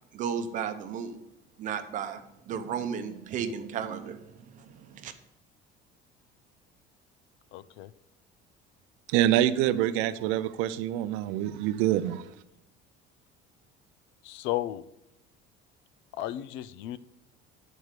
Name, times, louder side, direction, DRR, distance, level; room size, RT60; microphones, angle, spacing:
voice 1, 0.1-1.2 1.6-2.2 2.5-4.2 4.7-5.1, right 7 dB, 40° right, 8 dB, 0.7 m, -33 dB
voice 2, 7.5-7.9 14.2-14.8 16.1-17.0, left 14 dB, 65° left, 18 dB, 0.4 m, -34 dB
voice 3, 9.1-12.3, right 12 dB, 80° right, 13 dB, 0.5 m, -26 dB
9.7 x 4.6 x 6.6 m, 0.86 s
cardioid pair, 175°, 20 cm